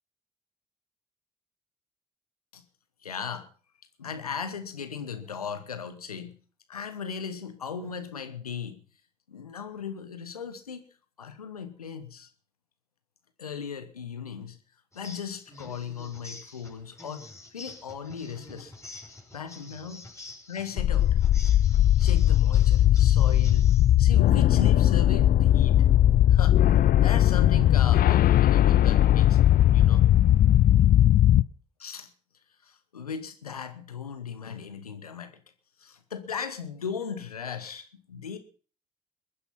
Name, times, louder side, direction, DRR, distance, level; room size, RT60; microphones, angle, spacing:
voice 1, 3.0-3.5 4.0-6.4 6.7-8.8 9.3-10.8 11.2-12.3 13.4-14.6 14.9-18.7 19.3-20.1 20.5-21.2 22.0-26.6 27.0-30.1 31.8-32.1 32.6-35.4 35.8-38.4, left 7 dB, 90° left, 10 dB, 1.2 m, -37 dB
sound 1, 14.9-23.9, left 2 dB, 15° left, 5.9 m, -47 dB
sound 2, 20.8-31.4, left 12 dB, 50° left, 0.7 m, -19 dB
21.5 x 9.7 x 5.6 m, 0.41 s
figure-of-eight pair, 45°, 19 cm